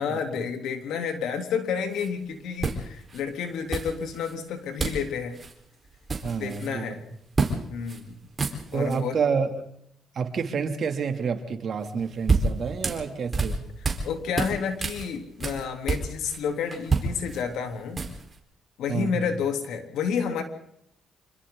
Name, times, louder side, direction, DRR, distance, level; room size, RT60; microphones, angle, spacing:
voice 1, 0.0-5.4 6.4-7.0 7.7-8.2 8.7-9.2 14.0-18.1 18.8-20.4, left 6 dB, 80° left, 5 dB, 3.4 m, -30 dB
sound 1, 1.9-2.1 2.6-3.2 3.7-4.3 4.8-5.1 5.3-5.5 5.8-6.7 7.3-7.6 7.9-8.0 8.3-9.0 11.8-14.1 14.3-16.4 16.7-18.4, right 4 dB, 30° right, 4.5 m, -28 dB
voice 2, 6.2-7.0 8.7-9.6 10.1-13.7 18.9-19.3, right 5 dB, 55° right, 5 dB, 2.8 m, -29 dB
27.5 x 24.5 x 4.0 m, 0.73 s
cardioid pair, 90°, 0 cm